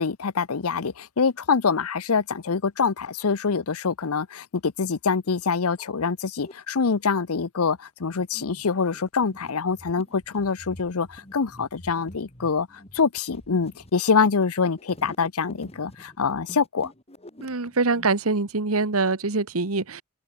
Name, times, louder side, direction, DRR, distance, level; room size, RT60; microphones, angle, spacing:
voice 1, 0.0-12.7 12.9-16.9, left 5 dB, 80° left, 0.8 m, -25 dB
sound 1, 4.4-4.5 5.2-5.3 5.6-6.5 7.2-18.1, left 1 dB, 30° left, 6.6 m, -47 dB
voice 2, 17.4-20.0, right 3 dB, 75° right, 1.5 m, -24 dB
open air
head